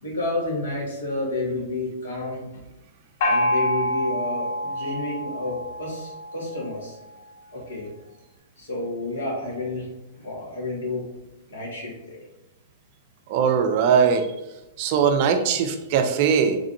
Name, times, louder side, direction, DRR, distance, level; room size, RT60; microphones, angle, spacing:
voice 1, 0.0-2.5 3.2-7.0 7.5-7.9 8.6-11.1 11.5-12.2, left 2 dB, 75° left, -4 dB, 1.4 m, -30 dB
Gong, 3.2-6.7, left 1 dB, 55° left, 0.7 m, -26 dB
voice 2, 13.3-14.3 14.8-16.6, right 6 dB, 50° right, 6 dB, 0.4 m, -20 dB
3.2 x 2.5 x 2.6 m, 0.96 s
hypercardioid pair, 115°, 0 cm